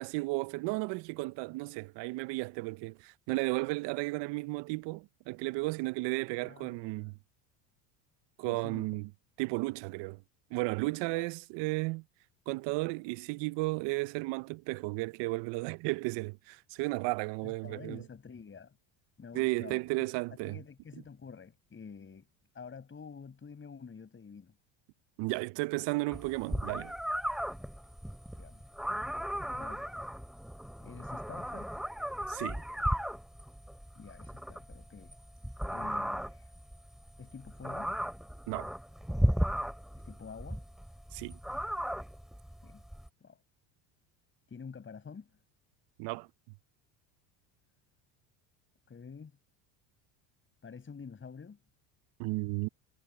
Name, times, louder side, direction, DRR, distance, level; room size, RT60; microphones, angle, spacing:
voice 1, 0.0-7.2 8.4-9.1 9.4-10.2 10.5-12.0 12.5-18.0 19.3-20.6 25.2-26.9 32.3-32.6 38.5-38.7 41.1-41.4 46.0-46.3 52.2-52.7, right 24 dB, 65° right, 0.7 m, -34 dB
voice 2, 6.4-7.1 8.4-8.9 11.1-11.3 17.4-18.8 19.2-20.0 20.4-24.5 28.3-28.6 29.6-29.9 30.8-31.7 33.9-35.1 35.7-36.5 37.2-37.9 40.0-40.6 42.6-42.8 43.2-43.4 44.5-45.3 48.9-49.4 50.6-51.6, left 5 dB, 25° left, 5.7 m, -48 dB
sound 1, 26.1-43.1, equal, ahead, 3.2 m, -36 dB
supercardioid pair, 105°, 46 cm